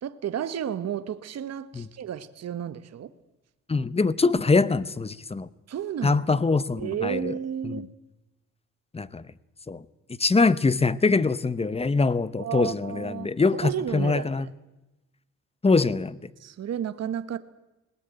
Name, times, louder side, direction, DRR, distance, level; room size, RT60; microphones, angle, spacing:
voice 1, 0.0-3.1 5.7-6.2 6.8-7.9 12.4-13.3 13.6-14.5 16.4-17.4, right 9 dB, 60° right, 12 dB, 1.3 m, -32 dB
voice 2, 3.7-5.5 6.0-7.4 7.6-7.7 8.9-9.2 9.7-9.8 10.2-14.5 15.6-16.2, left 3 dB, 20° left, 18 dB, 0.9 m, -23 dB
20.0 x 18.5 x 9.1 m, 1.0 s
cardioid pair, 90°, 30 cm